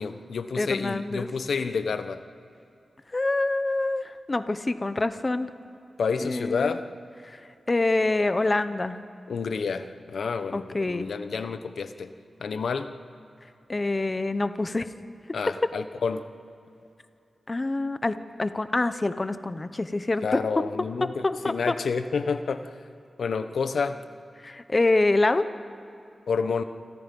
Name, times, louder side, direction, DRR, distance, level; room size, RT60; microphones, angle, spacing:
voice 1, 0.0-2.2 6.0-6.8 9.3-12.1 12.4-12.9 15.3-16.2 20.2-22.7 23.2-24.0 26.3-26.6, left 5 dB, 80° left, 10 dB, 1.1 m, -29 dB
voice 2, 0.6-1.3 3.1-5.5 6.2-6.8 7.2-7.4 7.7-9.0 10.5-11.1 13.7-14.9 17.5-20.4 20.8-21.7 24.4-25.4, left 2 dB, 25° left, 11 dB, 0.9 m, -26 dB
28.5 x 25.5 x 5.4 m, 2.7 s
wide cardioid pair, 145°, 0 cm